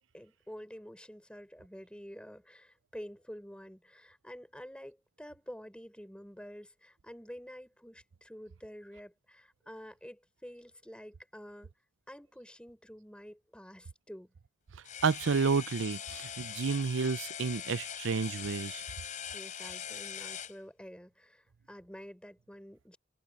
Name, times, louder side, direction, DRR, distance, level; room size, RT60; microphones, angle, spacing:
voice 1, 0.1-11.7 12.1-14.3 19.3-23.0, equal, 5° left, 5.5 m, -49 dB
sound 1, 14.8-20.6, left 8 dB, 40° left, 5.7 m, -42 dB
voice 2, 15.0-18.8, right 5 dB, 75° right, 0.5 m, -30 dB
head